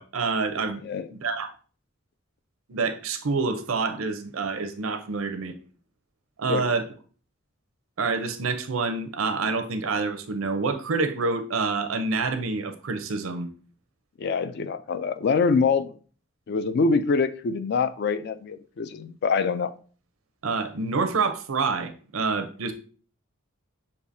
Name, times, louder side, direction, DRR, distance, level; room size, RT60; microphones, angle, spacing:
voice 1, 0.0-0.8 1.1-1.5 2.7-5.6 6.4-6.9 8.0-13.5 20.4-22.7, right 4 dB, 90° right, 0.6 m, -27 dB
voice 2, 14.2-15.9 16.5-19.7, left 4 dB, 55° left, 0.3 m, -25 dB
6.6 x 2.8 x 2.6 m
head